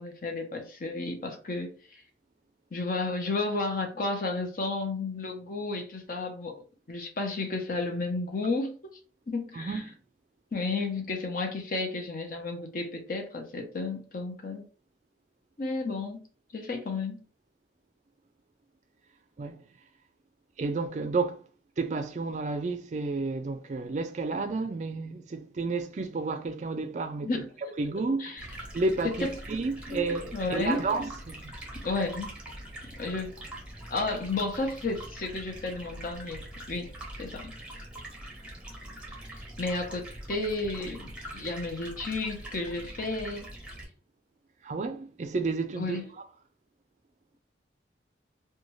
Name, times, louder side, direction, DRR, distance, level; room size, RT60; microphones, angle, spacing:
voice 1, 0.0-2.0 2.7-6.6 6.9-9.0 9.3-9.8 10.5-14.6 15.6-16.2 16.5-17.2 27.2-27.5 28.2-28.4 29.0-29.3 29.9-30.0 30.3-30.8 31.8-32.3 32.9-33.4 33.9-36.4 36.7-36.9 37.2-37.5 39.3-43.5 45.8-46.1, left 3 dB, 50° left, 0.6 m, -32 dB
voice 2, 9.5-9.9 19.4-19.6 20.6-21.4 21.8-27.4 27.8-31.6 44.6-46.0, right 3 dB, 40° right, 0.3 m, -31 dB
Stream, 28.4-43.8, right 1 dB, 5° right, 0.8 m, -43 dB
2.6 x 2.2 x 3.0 m
head